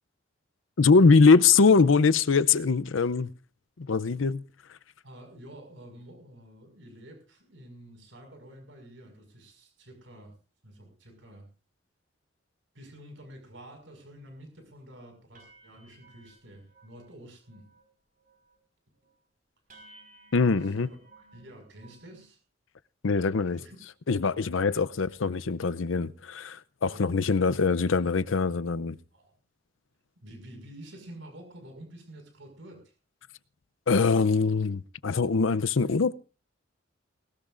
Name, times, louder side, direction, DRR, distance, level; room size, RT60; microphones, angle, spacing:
voice 1, 0.8-3.3 3.8-4.4 20.3-20.9 23.0-23.6 24.1-29.0 33.9-36.1, left 4 dB, 85° left, 0.6 m, -22 dB
voice 2, 5.0-10.3 10.6-11.5 12.7-17.7 20.6-21.0 21.3-22.4 23.6-23.8 26.9-27.1 29.1-29.3 30.2-32.9, right 1 dB, 75° right, 5.7 m, -49 dB
sound 1, 13.8-13.9 14.3-14.6 14.9-15.0 15.3-17.1 17.4-17.9 18.2-18.6 19.0-19.1 19.7-22.3, right 2 dB, 45° right, 5.0 m, -57 dB
20.0 x 19.0 x 2.6 m
head